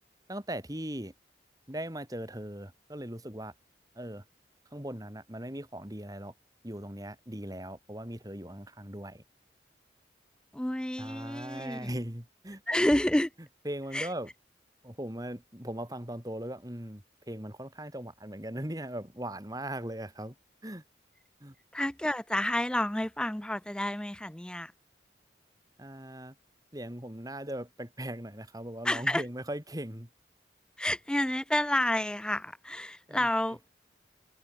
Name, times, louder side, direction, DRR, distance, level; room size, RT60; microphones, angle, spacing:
voice 1, 0.3-1.1 1.7-3.5 4.0-4.2 4.7-6.3 6.6-9.2 11.0-12.6 13.7-14.3 14.8-20.4 20.6-20.8 21.4-21.6 25.8-26.3 26.7-30.1 33.1-33.3, right 1 dB, 20° right, 3.4 m, -39 dB
voice 2, 10.5-11.9 12.7-13.3 13.9-14.1 21.7-24.7 28.8-29.2 30.8-33.6, left 1 dB, 5° left, 0.4 m, -29 dB
head